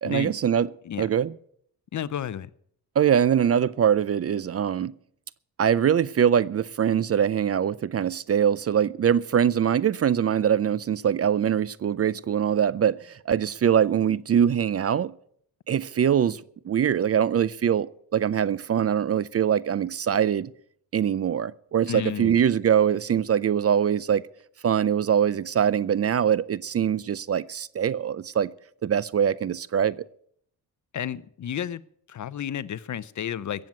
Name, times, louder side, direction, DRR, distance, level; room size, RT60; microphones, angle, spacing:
voice 1, 0.0-0.7 1.0-1.3 3.0-4.9 5.6-15.1 15.7-20.5 20.9-24.2 24.6-28.5 28.8-30.0, right 8 dB, 35° right, 0.5 m, -23 dB
voice 2, 1.9-2.5 21.9-22.4 30.9-31.8 32.1-33.7, left 9 dB, 45° left, 0.7 m, -32 dB
15.0 x 7.7 x 9.1 m
cardioid pair, 75°, 40 cm